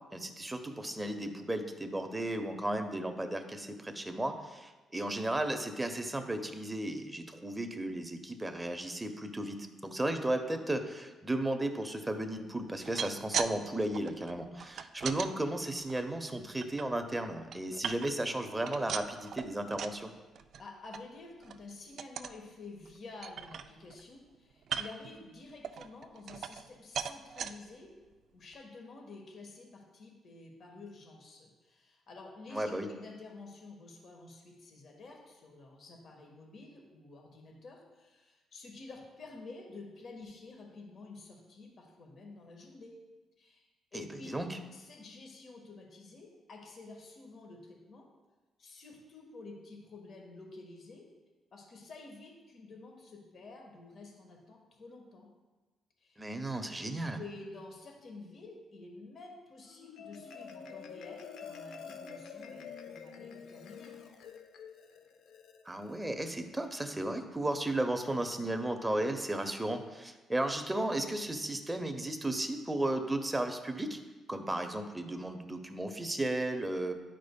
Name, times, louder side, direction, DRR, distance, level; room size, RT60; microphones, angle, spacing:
voice 1, 0.1-20.1 32.5-32.9 43.9-44.0 44.3-44.6 56.2-57.2 65.7-74.0 74.3-76.9, right 1 dB, 15° right, 6 dB, 0.7 m, -34 dB
sound 1, 12.7-13.5 13.8-15.3 15.8-16.8 17.3-18.3 18.6-20.0 20.3-20.6 20.9-21.0 21.4-21.6 22.0-22.4 22.8-22.9 23.2-24.0 24.6-25.1 25.6-26.7 26.9-27.5 28.1-28.2 28.5-28.6, right 7 dB, 65° right, 0.3 m, -38 dB
voice 2, 20.6-27.9 28.3-42.9 43.4-44.4 44.7-48.1 48.6-51.1 51.5-55.3 56.0-56.3 57.2-64.0, left 3 dB, 55° left, 0 dB, 1.3 m, -50 dB
Marimba xylophone, 59.7-66.3, left 6 dB, 80° left, 0.6 m, -48 dB
10.5 x 5.0 x 2.3 m, 1.2 s
cardioid pair, 90°, 0 cm